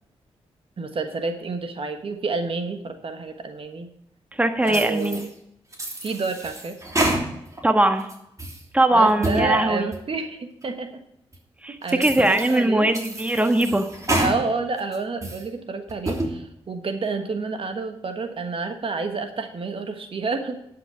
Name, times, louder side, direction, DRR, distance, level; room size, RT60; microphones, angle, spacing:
voice 1, 0.8-3.9 4.6-5.3 6.0-6.8 8.9-10.9 11.8-12.9 14.2-20.6, right 4 dB, 55° right, 7 dB, 1.3 m, -29 dB
voice 2, 4.4-5.3 7.6-8.1 8.7-9.8 11.6-13.9, right 1 dB, 10° right, 7 dB, 1.4 m, -20 dB
sound 1, 4.7-5.3 5.7-7.6 8.0-8.6 9.1-9.5 9.9-10.0 10.6-10.7 11.3-11.4 11.9-12.6 12.9-14.4 14.8-15.4 15.9-16.3, right 1 dB, 30° right, 3.0 m, -28 dB
11.5 x 6.1 x 6.3 m, 0.78 s
cardioid pair, 50°, 11 cm